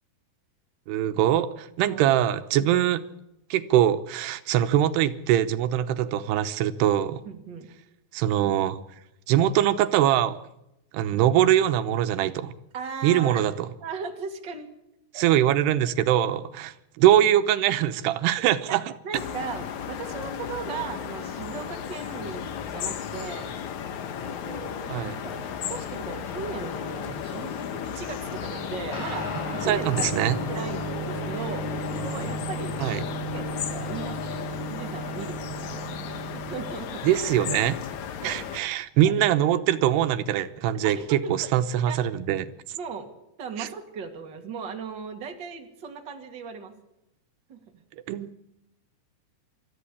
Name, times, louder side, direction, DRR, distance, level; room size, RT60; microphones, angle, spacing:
voice 1, 0.9-3.0 3.5-7.2 8.1-8.8 9.3-10.4 10.9-12.5 13.0-13.7 15.1-18.8 24.9-25.2 29.7-30.4 32.8-33.0 37.0-37.8 38.2-42.5 43.6-43.7 48.1-48.4, right 11 dB, 85° right, 10 dB, 3.0 m, -23 dB
voice 2, 7.2-7.7 12.7-13.4 13.8-14.7 15.1-15.3 18.7-18.8 19.0-23.5 24.2-30.1 30.5-31.6 31.9-35.6 36.3-37.1 38.2-38.4 40.8-41.5 41.9-42.0 42.7-43.1 43.4-46.7 47.5-47.8, right 5 dB, 30° right, 4 dB, 2.5 m, -37 dB
sound 1, 19.1-38.6, left 8 dB, 60° left, 2.2 m, -34 dB
sound 2, 28.9-36.7, right 3 dB, 75° left, 8.8 m, -35 dB
25.0 x 14.0 x 8.5 m, 0.87 s
omnidirectional pair, 4.6 m